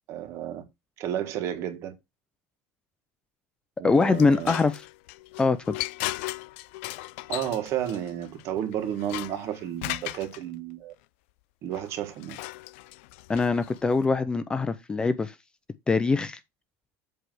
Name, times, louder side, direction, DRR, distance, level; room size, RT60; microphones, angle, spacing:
voice 1, 0.1-0.6 1.0-1.9 3.8-4.6 7.3-10.9 11.6-12.4, right 10 dB, 45° right, 1.7 m, -32 dB
voice 2, 3.8-4.8 5.4-5.8 13.3-15.3 15.9-16.4, left 4 dB, 15° left, 0.4 m, -23 dB
sound 1, 3.9-10.4 11.7-14.1, left 20 dB, 80° left, 0.3 m, -37 dB
7.8 x 3.3 x 6.2 m
cardioid pair, 155°, 7 cm